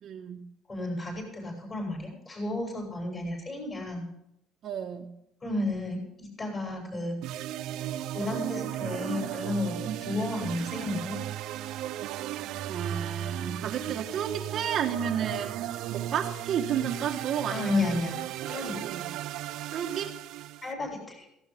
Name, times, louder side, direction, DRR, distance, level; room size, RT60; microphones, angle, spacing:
voice 1, 0.0-0.4 4.6-5.1 9.8-10.1 12.7-15.6 15.9-18.0 18.8-19.0 19.7-20.1, right 8 dB, 40° right, 2 dB, 1.5 m, -32 dB
voice 2, 0.7-4.1 5.4-7.2 8.1-11.2 17.5-18.2 18.5-18.8 20.6-21.3, left 2 dB, 20° left, 1 dB, 7.2 m, -32 dB
sound 1, 7.2-20.7, right 12 dB, 60° right, 0.7 m, -35 dB
18.0 x 16.5 x 3.7 m, 0.79 s
cardioid pair, 160°, 0 cm